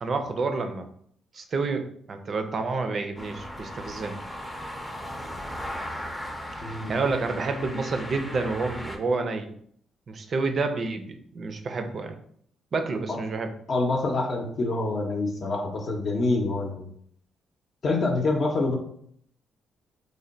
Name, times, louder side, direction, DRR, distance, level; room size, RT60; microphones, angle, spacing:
voice 1, 0.0-0.9 1.3-4.2 6.9-9.5 10.1-12.2 12.7-13.5, right 3 dB, 45° right, 7 dB, 0.5 m, -29 dB
sound 1, 3.2-9.0, equal, 5° left, 0.5 m, -37 dB
voice 2, 6.6-7.0 13.1-13.2 13.7-16.9 17.8-18.8, left 2 dB, 50° left, 1 dB, 0.6 m, -26 dB
3.2 x 2.2 x 3.9 m, 0.64 s
cardioid pair, 90°, 0 cm